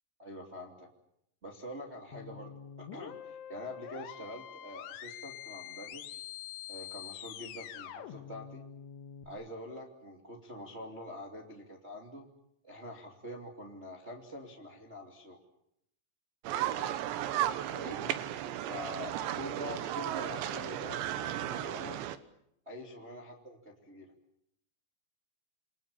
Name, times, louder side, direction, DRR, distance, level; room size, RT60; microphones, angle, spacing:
voice 1, 0.2-0.9 1.4-6.2 6.7-8.6 9.2-12.3 12.6-15.4 17.7-18.2 18.6-22.0 22.6-23.6 23.8-24.1, left 1 dB, 20° right, 1 dB, 2.2 m, -45 dB
sound 1, 2.1-9.3, left 10 dB, 70° left, 3.8 m, -45 dB
sound 2, 16.4-22.2, right 12 dB, 70° right, 3.2 m, -34 dB
29.0 x 24.5 x 7.2 m, 0.75 s
omnidirectional pair, 5.9 m